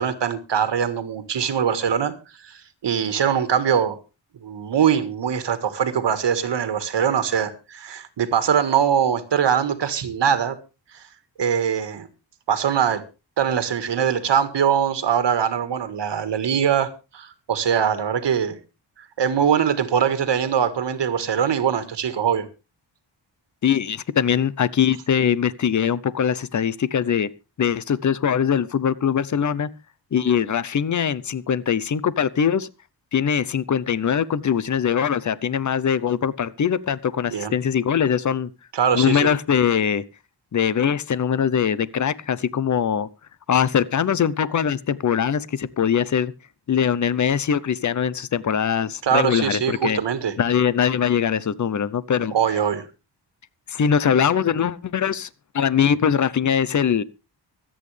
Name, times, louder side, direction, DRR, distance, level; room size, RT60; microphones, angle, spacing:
voice 1, 0.0-2.1 2.4-4.0 4.4-10.6 10.9-11.0 11.4-12.1 12.5-13.0 13.4-18.6 19.0-22.4 37.3-37.5 38.7-39.3 49.0-50.3 52.3-52.9, right 8 dB, 70° right, 1.7 m, -22 dB
voice 2, 23.6-27.3 27.6-29.7 30.1-32.7 33.1-38.5 38.9-40.0 40.5-43.1 43.5-46.3 46.7-50.0 50.4-52.3 53.7-55.3 55.5-57.0, left 8 dB, 40° left, 0.7 m, -22 dB
25.0 x 8.7 x 3.3 m
wide cardioid pair, 150°, 44 cm